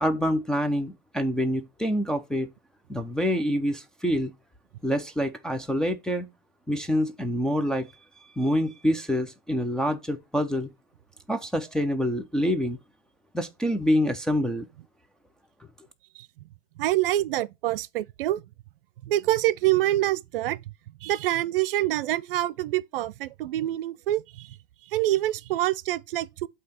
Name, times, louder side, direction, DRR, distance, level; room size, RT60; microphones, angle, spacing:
voice 1, 0.0-2.5 2.9-4.3 4.8-6.3 6.7-7.9 8.4-10.7 11.3-12.8 13.3-14.7, equal, ahead, 0.3 m, -26 dB
voice 2, 16.8-18.4 19.0-20.6 21.0-24.6 24.9-26.5, right 15 dB, 70° right, 0.6 m, -26 dB
8.2 x 2.8 x 5.7 m
supercardioid pair, 140°, 29 cm